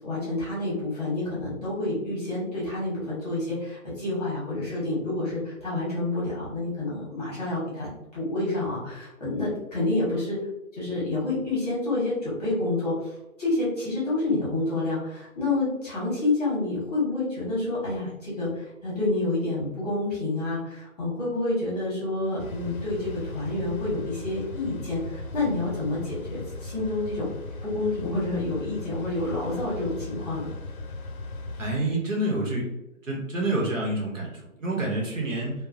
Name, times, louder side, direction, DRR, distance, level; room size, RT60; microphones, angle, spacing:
voice 1, 0.0-10.4 10.7-13.1 13.4-27.3 27.6-30.5, left 2 dB, 30° left, -8 dB, 1.1 m, -28 dB
sound 1, 22.4-31.8, left 2 dB, 75° left, 0.5 m, -38 dB
voice 2, 31.6-32.7 33.1-35.5, right 1 dB, 60° right, -3 dB, 1.0 m, -28 dB
2.7 x 2.2 x 2.5 m, 0.92 s
figure-of-eight pair, 145°, 43 cm